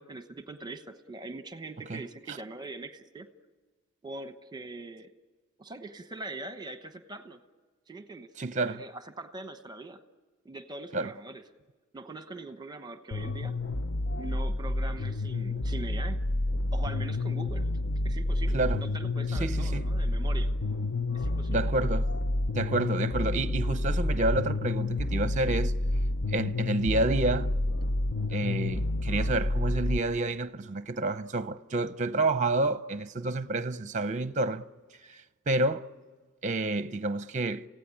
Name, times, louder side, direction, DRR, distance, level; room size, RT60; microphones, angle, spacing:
voice 1, 0.0-3.3 4.0-5.1 5.6-7.4 7.9-8.3 8.6-10.0 10.4-11.4 11.9-13.6 14.2-16.2 16.7-17.7 18.0-20.5 21.1-21.6, right 2 dB, 20° right, 1.0 m, -42 dB
voice 2, 8.4-8.8 10.9-11.1 18.5-18.8 19.4-19.9 21.5-22.1 22.5-25.7 26.3-27.5 28.3-34.6 35.1-35.2 35.5-35.9 36.4-37.7, right 2 dB, 35° right, 0.7 m, -29 dB
sound 1, 13.1-30.0, left 2 dB, 55° left, 0.7 m, -29 dB
28.0 x 16.5 x 9.9 m
head